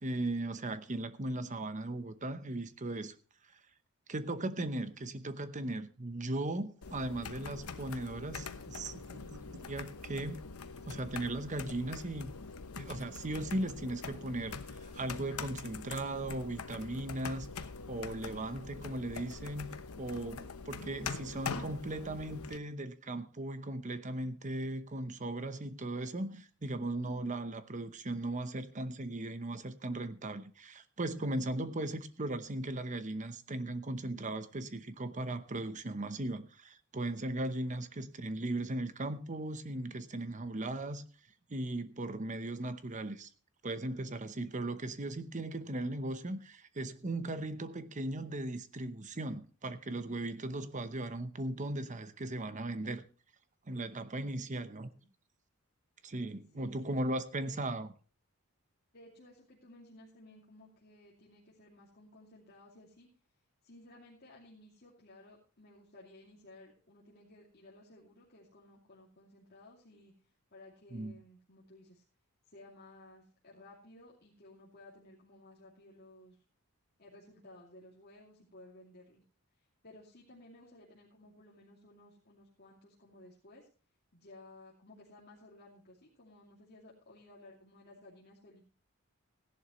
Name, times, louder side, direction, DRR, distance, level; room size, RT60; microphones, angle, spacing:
voice 1, 0.0-3.1 4.1-10.4 10.9-12.3 12.8-17.5 17.9-19.7 20.0-41.0 41.5-43.3 43.6-53.0 53.7-54.9 56.0-57.9 70.9-71.1, right 2 dB, 35° right, 0.9 m, -37 dB
sound 1, 6.8-22.6, left 4 dB, 80° left, 1.0 m, -44 dB
voice 2, 37.6-37.9 54.2-55.1 56.5-56.9 57.4-57.8 58.9-63.1 63.6-72.0 72.4-76.4 77.0-79.2 79.6-83.7 84.1-88.6, left 1 dB, 45° left, 2.6 m, -57 dB
16.5 x 11.0 x 3.1 m
head